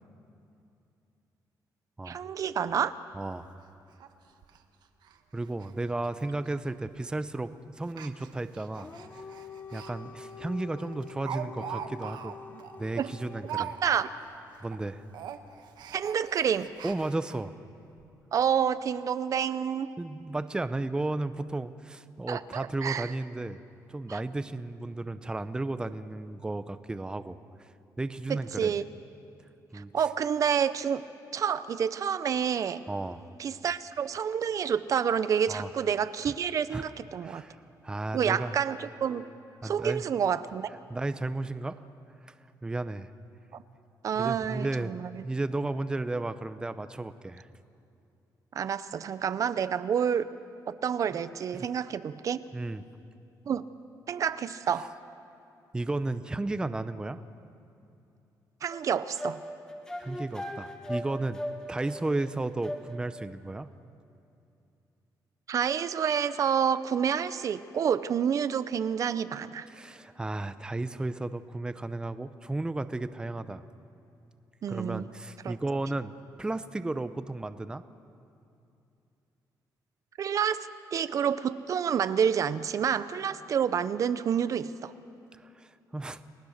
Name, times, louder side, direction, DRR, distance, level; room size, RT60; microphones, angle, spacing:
voice 1, 2.1-2.9 13.0-13.1 13.8-14.1 15.9-16.7 18.3-19.9 22.3-23.1 24.1-24.2 28.3-28.8 29.7-31.0 31.3-32.8 33.4-37.4 38.1-39.3 39.6-40.7 43.5-43.6 44.0-45.2 48.5-50.3 50.7-52.4 53.5-53.6 54.1-54.9 58.6-59.4 65.5-69.7 74.6-75.1 75.4-75.6 80.2-84.9, right 8 dB, 50° right, 14 dB, 0.7 m, -28 dB
voice 2, 3.1-3.5 5.3-8.9 9.7-12.3 12.8-13.7 14.6-15.0 16.8-17.5 20.0-23.6 23.9-27.4 28.0-28.8 29.7-29.9 32.9-33.2 35.5-35.7 36.7-36.8 37.2-37.6 37.8-38.5 39.6-40.0 40.9-41.8 42.2-42.3 42.6-43.1 44.2-47.5 51.5-51.7 52.5-52.8 55.7-57.2 60.0-61.4 61.7-63.7 69.7-73.6 74.7-77.8 85.4-86.2, right 2 dB, 10° right, 12 dB, 0.7 m, -33 dB
Speech, 3.1-3.2 3.5-3.6 4.0-4.1 4.4-4.6 5.0-5.2 5.4-5.7 6.0-6.1 6.9-7.1 7.8-9.9 10.3-10.4 10.8-14.3 14.6-14.8 15.1-17.4 18.0-18.1 18.4-18.5, right 9 dB, 80° right, 1.4 m, -41 dB
Dog, 8.6-13.8, left 6 dB, 25° left, 0.9 m, -46 dB
sound 1, 58.7-63.3, equal, 10° left, 2.0 m, -39 dB
30.0 x 19.5 x 6.6 m, 2.7 s
cardioid pair, 140°, 7 cm